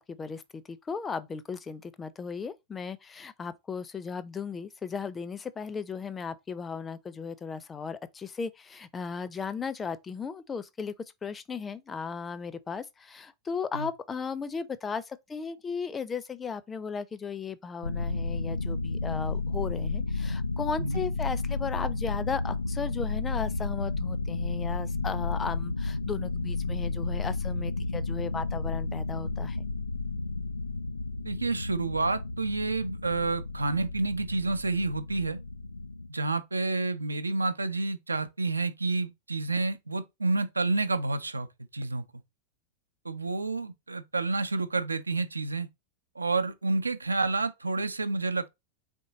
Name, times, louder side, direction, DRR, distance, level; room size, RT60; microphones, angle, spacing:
voice 1, 0.0-10.9 11.2-29.7, left 5 dB, 20° left, 0.5 m, -36 dB
sound 1, 17.8-36.1, left 3 dB, 80° left, 0.3 m, -32 dB
voice 2, 31.2-35.4 36.1-41.5 41.7-42.0 43.0-45.7 46.2-48.5, right 3 dB, 80° right, 0.6 m, -29 dB
3.7 x 3.6 x 4.0 m
figure-of-eight pair, 90°, 0 cm